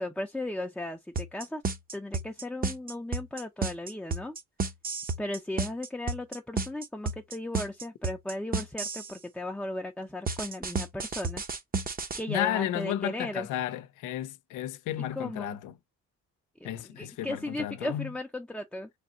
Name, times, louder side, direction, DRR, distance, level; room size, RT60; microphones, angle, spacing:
voice 1, 0.0-1.6 1.9-4.4 5.2-11.4 12.2-13.5 15.0-15.6 16.6-18.9, left 1 dB, 5° left, 0.6 m, -36 dB
sound 1, 1.2-9.2 10.3-12.2, right 4 dB, 30° right, 0.8 m, -32 dB
voice 2, 12.3-15.7 16.6-18.1, left 12 dB, 85° left, 0.6 m, -33 dB
3.4 x 2.7 x 3.8 m
cardioid pair, 90°, 30 cm